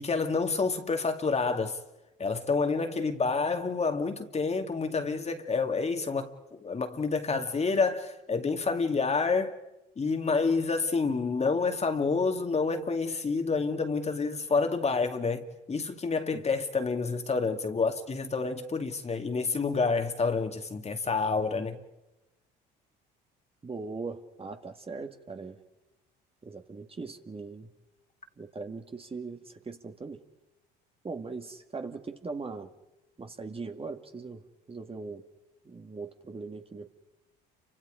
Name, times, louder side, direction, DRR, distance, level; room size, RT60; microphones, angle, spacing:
voice 1, 0.0-1.8 2.2-9.6 10.0-21.8, left 4 dB, 30° left, 2.4 m, -28 dB
voice 2, 23.6-25.6 26.4-27.7 28.4-30.2 31.0-32.7 33.2-35.2 35.6-36.9, right 4 dB, 25° right, 2.1 m, -40 dB
29.5 x 25.5 x 5.1 m
supercardioid pair, 75°, 21 cm